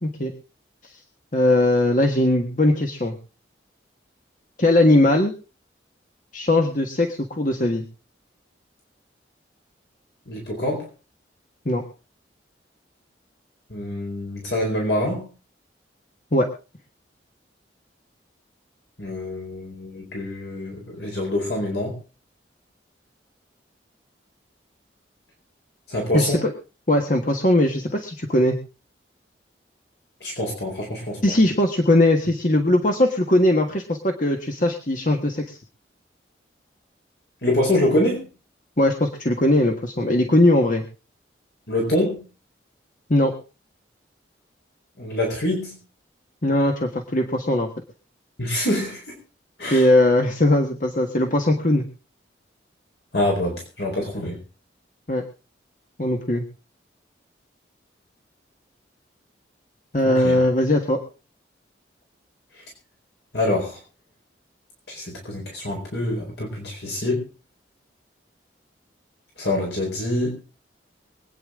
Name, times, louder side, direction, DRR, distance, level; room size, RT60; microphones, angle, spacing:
voice 1, 0.0-0.3 1.3-3.2 4.6-5.3 6.3-7.8 11.6-11.8 16.3-16.5 26.1-26.5 26.9-28.6 31.2-35.6 38.8-40.8 43.1-43.3 46.4-47.7 49.7-51.9 55.1-55.2 56.0-56.4 59.9-61.0, left 1 dB, 45° left, 3 dB, 1.5 m, -19 dB
voice 2, 10.3-10.9 13.7-15.3 19.0-22.0 25.9-26.5 30.2-31.4 37.4-38.3 41.7-42.2 45.0-45.8 48.4-49.1 49.6-49.9 53.1-54.4 60.0-60.4 63.3-63.8 64.9-67.3 69.4-70.4, left 1 dB, 65° left, 0 dB, 4.3 m, -25 dB
24.0 x 9.4 x 3.7 m, 0.33 s
head